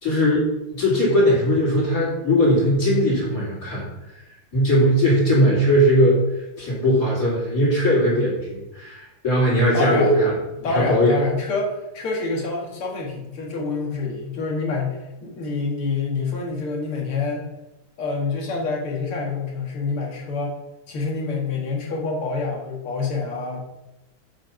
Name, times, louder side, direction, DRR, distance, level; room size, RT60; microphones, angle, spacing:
voice 1, 0.0-0.5 0.7-3.9 4.5-6.2 6.6-11.2, equal, 40° left, -5 dB, 3.3 m, -19 dB
voice 2, 9.7-10.2 10.6-17.4 18.0-20.5 20.9-23.6, left 3 dB, 80° left, -2 dB, 2.6 m, -27 dB
7.0 x 5.4 x 5.8 m, 0.95 s
omnidirectional pair, 2.4 m